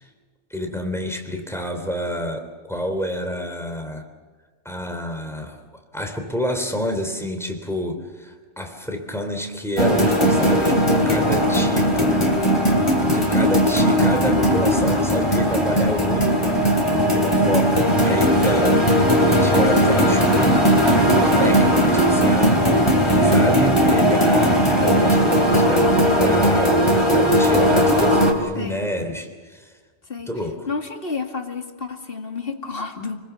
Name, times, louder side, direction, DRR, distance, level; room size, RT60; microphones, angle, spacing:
voice 1, 0.5-4.1 4.6-12.2 13.0-16.4 17.1-20.6 21.0-29.8 30.3-30.7, equal, ahead, 4 dB, 3.3 m, -29 dB
sound 1, 9.8-28.3, equal, 25° left, 3.4 m, -18 dB
voice 2, 18.2-18.5 28.6-28.9 30.1-30.3 30.7-33.2, left 4 dB, 55° left, 4 dB, 2.4 m, -30 dB
29.0 x 21.0 x 7.1 m, 1.5 s
omnidirectional pair, 1.2 m